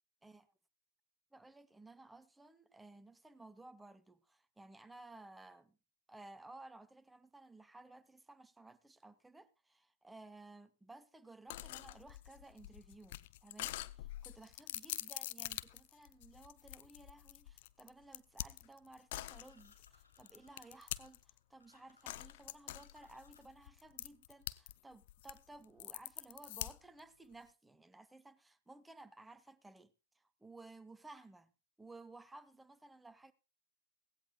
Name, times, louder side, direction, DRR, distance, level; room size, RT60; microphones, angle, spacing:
voice 1, 1.3-5.8 6.1-31.5 31.8-33.3, right 2 dB, 5° right, 0.9 m, -57 dB
sound 1, 11.5-21.4 22.1-24.7 25.0-27.0, left 16 dB, 50° left, 0.6 m, -45 dB
sound 2, 19.1-23.7, left 3 dB, 85° left, 3.3 m, -69 dB
17.0 x 16.5 x 2.4 m
figure-of-eight pair, 95°, 0 cm